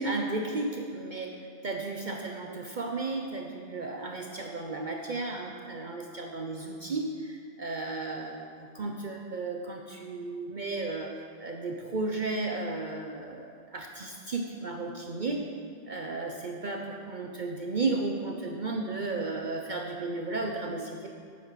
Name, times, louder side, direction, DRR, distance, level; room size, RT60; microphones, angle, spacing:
voice 1, 0.0-11.1 11.4-15.5 15.9-21.1, right 3 dB, 45° right, 2 dB, 0.9 m, -34 dB
11.0 x 9.3 x 5.8 m, 2.2 s
omnidirectional pair, 1.1 m